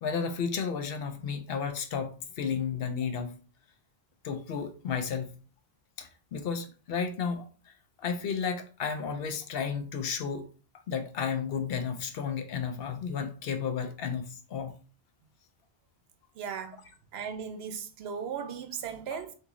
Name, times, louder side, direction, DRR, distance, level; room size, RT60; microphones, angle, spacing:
voice 1, 0.0-3.3 4.2-5.4 6.0-10.4 10.9-14.7, left 6 dB, 70° left, 0.7 m, -33 dB
voice 2, 16.4-16.8 17.1-19.4, right 7 dB, 75° right, 0.8 m, -37 dB
2.9 x 2.7 x 3.6 m
omnidirectional pair, 1.1 m